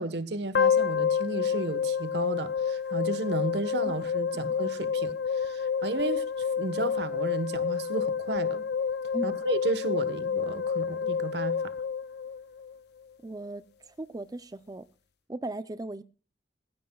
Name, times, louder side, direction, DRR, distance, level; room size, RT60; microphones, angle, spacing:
voice 1, 0.0-6.3 6.6-8.7 9.2-11.7, right 2 dB, 70° right, 1.2 m, -33 dB
sound 1, 0.5-12.8, left 6 dB, 65° left, 0.6 m, -29 dB
voice 2, 13.2-14.9 15.3-16.0, right 2 dB, 20° right, 0.5 m, -37 dB
20.0 x 15.5 x 2.3 m
head